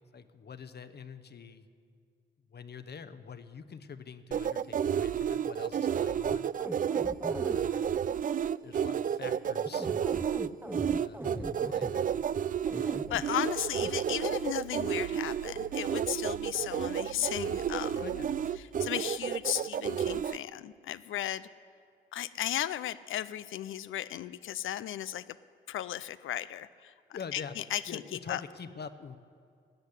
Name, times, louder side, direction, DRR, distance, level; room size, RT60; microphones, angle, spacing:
voice 1, 0.1-1.7 2.5-6.5 7.5-7.9 8.6-9.9 11.0-12.2 18.0-18.4 27.1-27.6 27.9-29.2, left 6 dB, 50° left, 11 dB, 0.9 m, -45 dB
sound 1, 4.3-20.4, right 8 dB, 40° right, 0.4 m, -31 dB
sound 2, 6.3-7.6 9.6-11.9 12.7-13.2 13.8-13.9, right 1 dB, 10° right, 0.8 m, -38 dB
voice 2, 12.7-18.0 18.6-21.5 22.1-25.4 25.7-26.9 27.3-28.4, left 12 dB, 70° left, 15 dB, 0.4 m, -35 dB
sound 3, 13.0-18.6, right 5 dB, 75° right, 1.0 m, -50 dB
13.5 x 8.1 x 9.8 m, 2.3 s
supercardioid pair, 50°, 21 cm